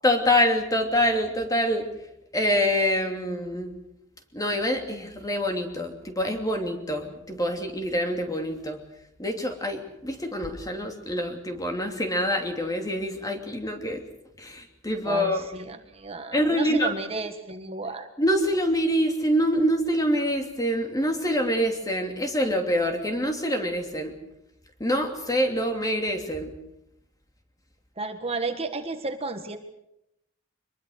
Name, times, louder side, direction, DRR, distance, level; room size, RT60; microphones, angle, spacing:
voice 1, 0.0-1.9 2.3-3.8 4.3-8.8 9.2-14.0 14.4-15.4 16.3-16.9 18.2-24.1 24.8-26.5, equal, 20° left, 4 dB, 2.9 m, -25 dB
voice 2, 15.0-18.1 28.0-29.6, right 3 dB, 30° right, 7 dB, 1.6 m, -33 dB
24.0 x 22.0 x 6.5 m, 0.81 s
head